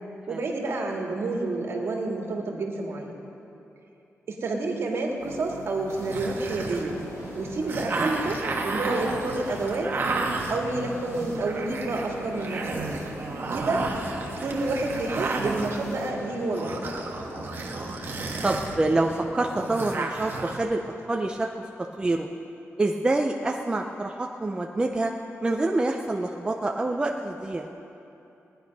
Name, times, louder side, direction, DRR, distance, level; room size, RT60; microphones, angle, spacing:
voice 1, 0.3-3.1 4.3-7.0 7.3-10.0 10.5-12.9 13.5-13.9 14.4-16.9, right 2 dB, 60° right, 0 dB, 2.0 m, -29 dB
sound 1, 5.2-16.1, right 6 dB, 90° right, 1.4 m, -45 dB
sound 2, 5.9-19.2, left 1 dB, 85° left, 3.1 m, -42 dB
sound 3, 6.1-20.6, right 3 dB, 45° right, 1.4 m, -32 dB
voice 2, 18.4-20.8 21.1-21.5 22.0-22.3 22.8-25.1 25.4-27.7, right 2 dB, 20° right, 2 dB, 0.6 m, -26 dB
19.0 x 10.5 x 5.4 m, 2.8 s
wide cardioid pair, 160°, 5 cm